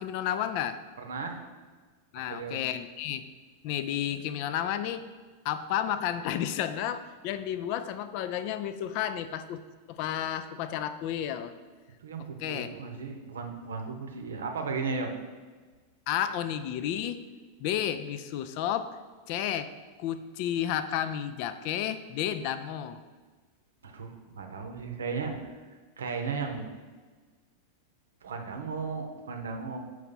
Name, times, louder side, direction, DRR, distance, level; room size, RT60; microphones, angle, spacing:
voice 1, 0.0-0.8 2.1-3.2 3.6-5.1 5.4-9.6 9.9-11.5 12.4-12.7 16.1-17.2 17.6-19.0 19.3-19.7 20.0-23.0, left 10 dB, 45° left, 11 dB, 0.3 m, -31 dB
voice 2, 1.0-1.4 2.3-2.6 12.0-15.1 23.8-25.6 26.0-26.7 28.2-29.8, right 4 dB, 65° right, 4 dB, 0.7 m, -35 dB
5.6 x 3.1 x 5.4 m, 1.4 s
figure-of-eight pair, 90°, 0 cm